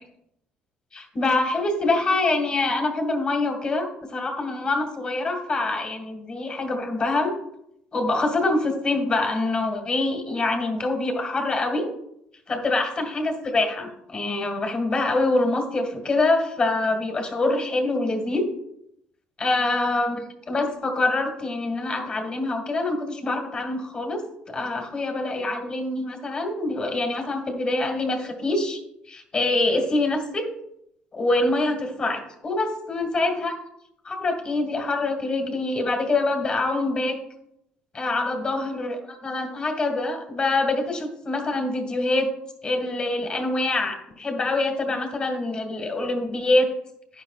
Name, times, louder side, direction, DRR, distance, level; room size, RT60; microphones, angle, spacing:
voice 1, 0.9-7.3 7.9-11.9 12.5-18.5 19.4-24.2 24.5-28.8 29.1-30.5 31.1-33.5 34.0-37.2 37.9-42.3 42.6-46.7, left 2 dB, 30° left, 4 dB, 2.0 m, -25 dB
11.0 x 10.0 x 2.4 m, 0.77 s
cardioid pair, 125°, 3 cm